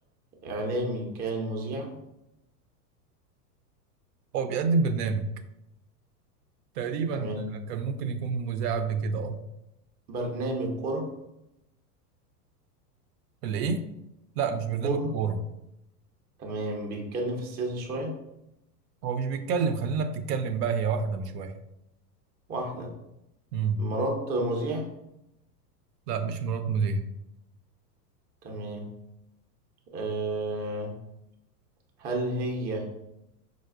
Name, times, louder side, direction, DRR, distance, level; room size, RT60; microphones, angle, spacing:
voice 1, 0.4-1.9 7.1-7.5 10.1-11.1 14.8-15.1 16.4-18.1 22.5-22.9 23.8-24.9 28.4-28.8 29.9-31.0 32.0-32.9, right 2 dB, 20° right, 1 dB, 0.4 m, -31 dB
voice 2, 4.3-5.3 6.8-9.4 13.4-13.9 14.4-15.4 19.0-21.6 23.5-23.8 26.1-27.0, right 5 dB, 75° right, 8 dB, 0.5 m, -28 dB
4.8 x 2.0 x 2.4 m, 0.86 s
hypercardioid pair, 115°, 49 cm